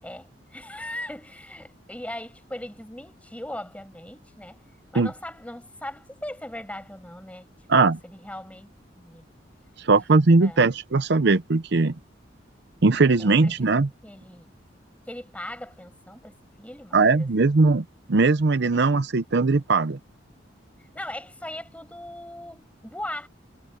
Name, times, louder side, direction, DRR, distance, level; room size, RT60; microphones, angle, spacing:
voice 1, 0.0-4.6 4.9-7.5 7.8-8.7 9.0-9.3 10.4-10.7 13.2-14.6 15.1-17.5 18.7-18.9 20.9-23.3, left 1 dB, 10° left, 5.8 m, -39 dB
voice 2, 9.8-11.9 12.8-13.9 16.9-20.0, right 3 dB, 65° right, 0.7 m, -20 dB
head